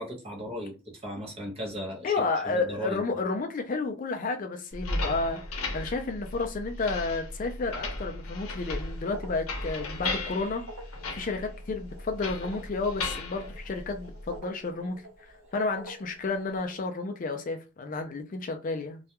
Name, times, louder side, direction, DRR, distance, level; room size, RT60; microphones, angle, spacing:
voice 1, 0.0-2.1 2.4-3.0, equal, 25° right, 0.7 m, -36 dB
voice 2, 2.0-10.6 11.1-15.0 15.5-19.0, left 3 dB, 40° left, 0.3 m, -31 dB
sound 1, 4.7-14.4, left 2 dB, 80° left, 0.7 m, -36 dB
sound 2, 8.5-16.8, right 1 dB, 60° right, 0.7 m, -49 dB
2.3 x 2.2 x 2.7 m
head